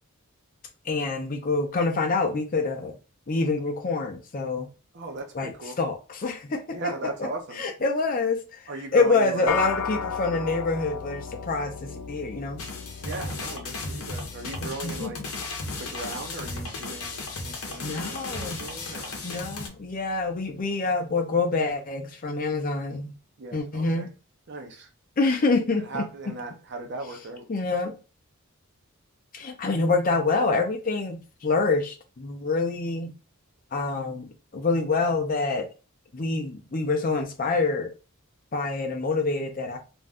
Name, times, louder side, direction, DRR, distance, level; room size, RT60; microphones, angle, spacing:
voice 1, 0.9-3.0 3.3-4.7 5.3-5.5 5.8-6.8 7.6-12.7 14.6-15.1 17.8-18.6 19.2-23.1 23.5-24.1 25.2-26.0 27.5-27.9 29.3-33.1 33.7-35.7 36.1-37.9 38.5-39.8, left 3 dB, 40° left, 0.5 m, -26 dB
voice 2, 4.9-5.8 6.7-7.6 8.7-9.5 13.0-15.2 15.7-19.2 23.4-24.1 24.5-24.9 25.8-27.5, right 3 dB, 50° right, 0.6 m, -37 dB
sound 1, 9.5-19.0, left 6 dB, 90° left, 0.4 m, -37 dB
sound 2, 12.6-19.7, left 3 dB, 75° left, 0.8 m, -35 dB
2.5 x 2.2 x 3.4 m
head